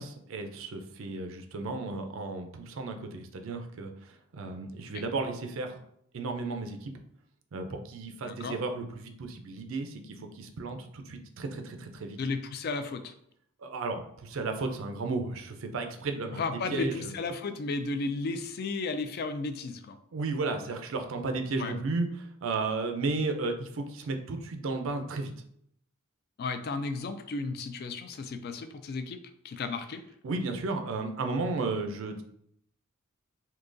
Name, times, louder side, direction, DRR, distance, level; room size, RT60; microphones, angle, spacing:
voice 1, 0.0-5.8 6.1-6.9 7.5-12.2 13.6-17.1 20.1-25.3 30.2-32.2, right 3 dB, 65° right, 5 dB, 0.4 m, -34 dB
voice 2, 8.2-8.6 12.2-13.1 16.4-20.0 21.6-21.8 26.4-29.2 29.4-30.0, left 3 dB, 45° left, 9 dB, 0.3 m, -34 dB
3.7 x 2.7 x 2.5 m, 0.70 s
head